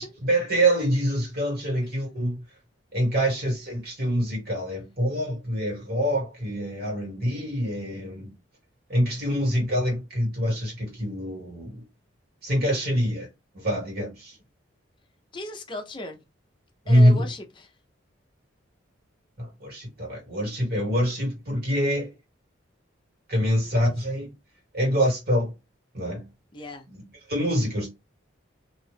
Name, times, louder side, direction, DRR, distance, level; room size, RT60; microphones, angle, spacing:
voice 1, 0.0-2.4 2.9-8.3 8.9-11.8 12.4-13.3 13.5-14.4 16.8-17.3 19.4-22.1 23.3-24.3 24.7-25.5 25.9-26.2 26.9-27.0 27.3-27.9, equal, 50° right, 1.7 m, -25 dB
voice 2, 15.3-16.2 16.9-17.7 23.6-23.7 26.5-26.9, left 1 dB, 25° left, 0.5 m, -37 dB
2.6 x 2.4 x 3.3 m
head